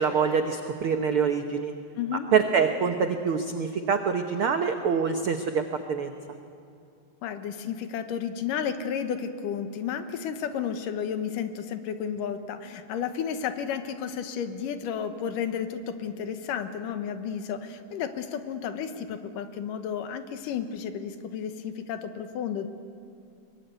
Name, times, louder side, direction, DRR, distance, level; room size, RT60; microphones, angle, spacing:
voice 1, 0.0-1.7 2.3-6.1, right 6 dB, 85° right, 6 dB, 1.2 m, -25 dB
voice 2, 2.0-2.3 7.2-22.7, left 8 dB, 75° left, 9 dB, 2.7 m, -32 dB
23.0 x 22.5 x 9.2 m, 2.4 s
omnidirectional pair, 4.0 m